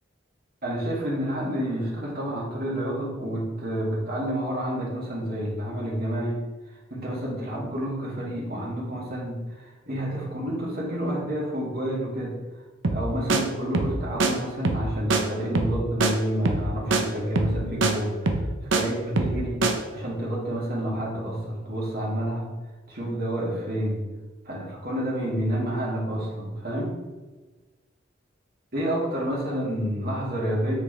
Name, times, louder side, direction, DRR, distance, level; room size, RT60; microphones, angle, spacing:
voice 1, 0.6-6.4 6.9-12.4 12.9-18.3 18.6-19.6 19.9-22.5 22.9-24.0 24.4-26.9 28.7-30.7, equal, 55° right, -4 dB, 2.7 m, -29 dB
sound 1, 12.8-13.0 13.3-13.4 13.7-13.9 14.2-14.3 14.6-14.9 15.1-15.2 15.5-16.1 16.5-16.7 16.9-17.0 17.4-17.6 17.8-17.9 18.3-18.8 19.2-19.4 19.6-19.7, right 3 dB, 75° right, 0.9 m, -23 dB
8.1 x 6.5 x 3.4 m, 1.2 s
head